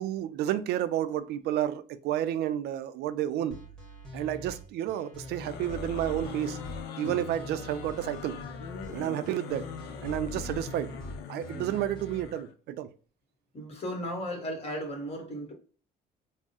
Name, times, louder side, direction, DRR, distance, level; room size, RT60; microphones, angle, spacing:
voice 1, 0.0-3.6 4.1-6.7 7.0-8.4 8.9-9.7 10.0-10.9 11.3-12.9, right 11 dB, 75° right, 0.4 m, -31 dB
sound 1, 3.5-12.2, left 1 dB, 5° left, 1.5 m, -43 dB
sound 2, 5.2-12.5, left 8 dB, 85° left, 0.5 m, -42 dB
voice 2, 13.5-15.5, equal, 35° left, 1.3 m, -37 dB
3.5 x 2.1 x 3.9 m
cardioid pair, 110°, 17 cm